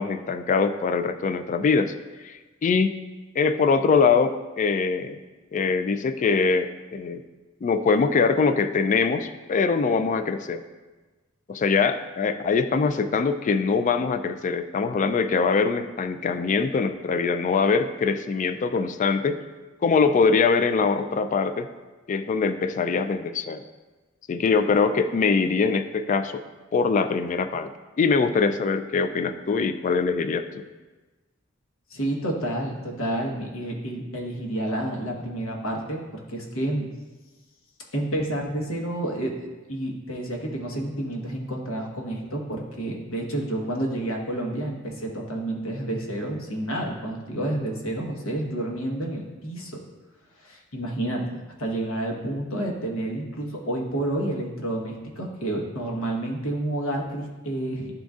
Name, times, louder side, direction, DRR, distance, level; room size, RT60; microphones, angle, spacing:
voice 1, 0.0-1.9 2.2-2.9 3.4-5.2 5.5-7.2 7.6-10.6 11.5-19.4 19.8-21.7 22.1-23.6 24.3-26.4 26.7-27.7 28.0-30.6, left 5 dB, 40° left, 10 dB, 0.3 m, -23 dB
voice 2, 31.9-36.9 37.9-49.7 50.4-57.9, right 1 dB, 85° left, -1 dB, 1.2 m, -30 dB
11.0 x 3.9 x 2.4 m, 1.2 s
head